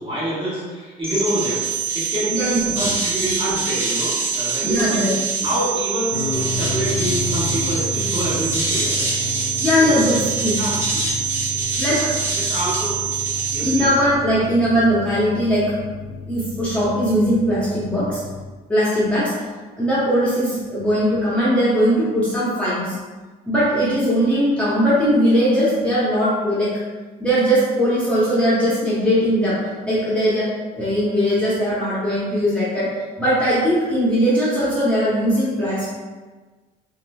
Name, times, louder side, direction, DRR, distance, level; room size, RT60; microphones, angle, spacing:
voice 1, 0.0-1.7 1.9-5.0 5.4-9.1 9.7-10.1 10.5-10.8 11.7-13.0 13.5-13.9, equal, 30° right, -8 dB, 1.4 m, -27 dB
sound 1, 1.0-13.9, right 4 dB, 15° right, 1.1 m, -24 dB
voice 2, 2.3-2.7 4.6-5.1 9.6-10.6 11.8-12.1 13.6-15.7 16.3-18.2 18.7-19.3 19.8-23.0 23.5-26.7 27.2-30.5 30.7-32.9 33.2-35.9, equal, 5° left, -10 dB, 0.8 m, -19 dB
sound 2, 6.1-18.4, left 3 dB, 50° left, 0.4 m, -31 dB
3.1 x 2.9 x 2.3 m, 1.3 s
cardioid pair, 110°, 17 cm